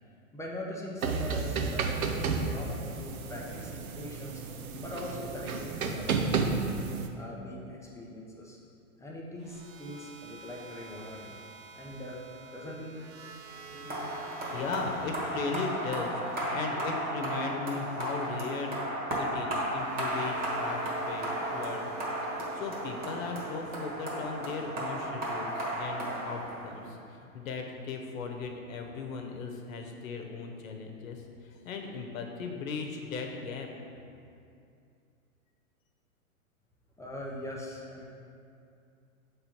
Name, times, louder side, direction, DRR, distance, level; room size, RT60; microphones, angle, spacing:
voice 1, 0.3-4.4 4.8-6.6 7.1-8.6 9.0-11.4 11.8-12.2 12.5-13.4 37.0-38.1, left 1 dB, 5° left, -4 dB, 0.5 m, -41 dB
sound 1, 1.0-7.1, right 4 dB, 80° right, 0.7 m, -32 dB
sound 2, 9.4-27.6, right 4 dB, 40° right, 0.5 m, -49 dB
voice 2, 13.7-18.8 19.2-21.8 22.2-33.7, left 4 dB, 70° left, 3 dB, 1.0 m, -38 dB
sound 3, 13.9-26.9, right 1 dB, 20° right, 1.4 m, -34 dB
6.9 x 3.8 x 4.4 m, 2.5 s
hypercardioid pair, 110°, 42 cm